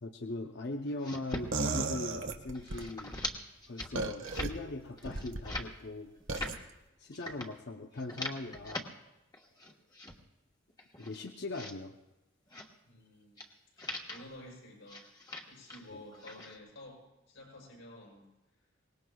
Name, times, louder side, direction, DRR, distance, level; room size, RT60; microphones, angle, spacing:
voice 1, 0.0-3.2 3.7-6.5 7.0-8.9 11.0-12.0 15.9-16.0, left 2 dB, 55° left, 5 dB, 0.7 m, -40 dB
sound 1, 0.9-1.5 1.8-2.2 2.5-3.4 3.6-3.9 4.2-4.5 5.0-5.7 6.2-6.6 7.1-7.5 7.9-8.9 9.3-10.2 10.7-11.7 12.5-12.7 13.4-13.5 13.8-14.3 14.9-15.8 16.1-16.6, left 1 dB, 20° left, 1.3 m, -42 dB
sound 2, 1.5-2.9 3.9-4.5 5.0-5.4 6.3-6.6, right 3 dB, 75° right, 1.4 m, -34 dB
voice 2, 12.9-13.5 13.8-15.1 15.5-17.0 17.3-18.3, left 1 dB, 75° left, -2 dB, 6.9 m, -51 dB
23.5 x 20.0 x 2.3 m, 1.0 s
head